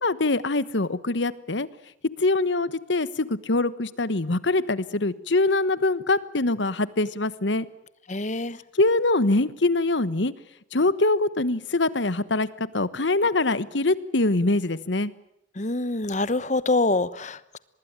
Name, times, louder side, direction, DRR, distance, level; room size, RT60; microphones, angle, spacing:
voice 1, 0.0-1.7 2.2-7.7 8.7-10.3 10.7-15.1, left 2 dB, 75° left, 17 dB, 1.2 m, -23 dB
voice 2, 8.1-8.6 15.6-17.6, left 2 dB, 40° left, 17 dB, 1.1 m, -25 dB
24.5 x 20.5 x 9.0 m, 0.79 s
head